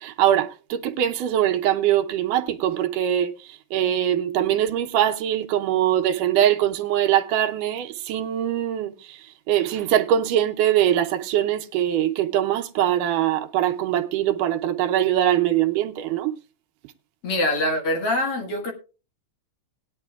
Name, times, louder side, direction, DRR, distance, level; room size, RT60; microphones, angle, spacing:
voice 1, 0.0-16.3, right 11 dB, 80° right, 2.4 m, -22 dB
voice 2, 17.2-18.7, left 1 dB, 50° left, 2.4 m, -24 dB
19.0 x 10.5 x 2.3 m
omnidirectional pair, 3.7 m